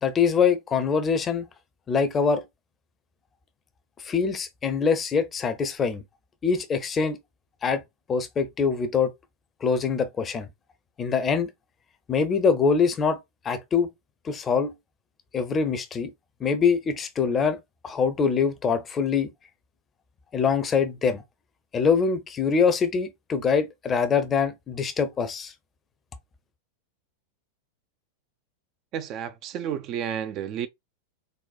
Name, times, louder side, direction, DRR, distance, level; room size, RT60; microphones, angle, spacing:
voice 1, 0.0-1.5 1.9-2.4 4.0-6.0 6.4-7.2 7.6-7.8 8.1-9.1 9.6-10.5 11.0-11.5 12.1-13.2 13.4-13.9 14.2-14.7 15.3-16.1 16.4-17.6 17.8-19.3 20.3-21.2 21.7-25.5, left 6 dB, 20° left, 0.5 m, -24 dB
voice 2, 28.9-30.7, right 9 dB, 35° right, 0.3 m, -31 dB
4.1 x 2.0 x 2.3 m
figure-of-eight pair, 90°, 0 cm